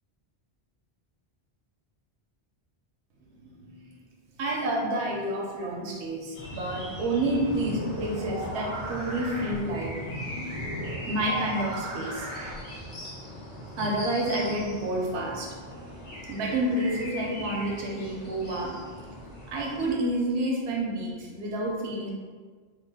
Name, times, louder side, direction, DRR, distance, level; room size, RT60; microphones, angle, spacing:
voice 1, 4.4-9.9 10.2-10.3 11.1-12.3 13.8-15.5 16.3-18.7 19.5-22.1, right 1 dB, 90° right, -2 dB, 0.9 m, -29 dB
sound 1, 6.3-19.9, equal, 80° left, 1.2 m, -40 dB
sound 2, 7.4-13.0, right 1 dB, 45° right, 0.3 m, -37 dB
2.9 x 2.3 x 3.3 m, 1.5 s
omnidirectional pair, 1.1 m